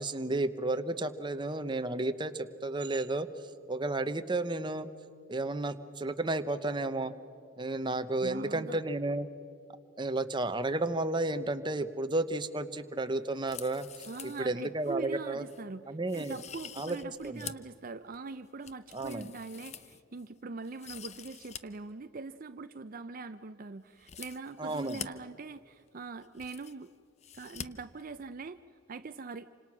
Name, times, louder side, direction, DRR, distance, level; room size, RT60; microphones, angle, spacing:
voice 1, 0.0-3.3 3.7-4.9 5.3-7.1 7.6-9.3 10.0-15.4 15.9-16.4 16.8-17.0 17.2-17.5 18.9-19.3 24.6-25.1, right 2 dB, 20° right, 9 dB, 0.9 m, -32 dB
voice 2, 8.2-8.8 14.1-15.9 16.1-26.9 27.3-28.6 28.9-29.5, right 3 dB, 45° right, 10 dB, 0.5 m, -42 dB
sound 1, 13.4-14.4 14.8-14.9 15.5-15.6 16.1-17.7 18.1-20.3 20.6-21.6 21.9-22.0 24.0-25.1 25.9-26.0 26.2-26.9 27.2-27.7 27.9-28.0, left 8 dB, 30° left, 0.7 m, -46 dB
28.0 x 26.0 x 6.1 m, 2.4 s
head